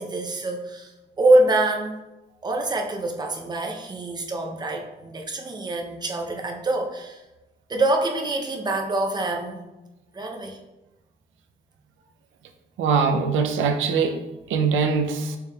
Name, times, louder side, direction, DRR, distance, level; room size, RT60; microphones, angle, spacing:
voice 1, 0.0-2.0 2.4-7.2 7.7-9.6 10.1-10.6, right 2 dB, 20° right, 2 dB, 0.6 m, -25 dB
voice 2, 12.8-14.2 14.5-15.4, right 5 dB, 80° right, 6 dB, 0.5 m, -22 dB
4.6 x 3.3 x 2.3 m, 1.0 s
cardioid pair, 90°, 20 cm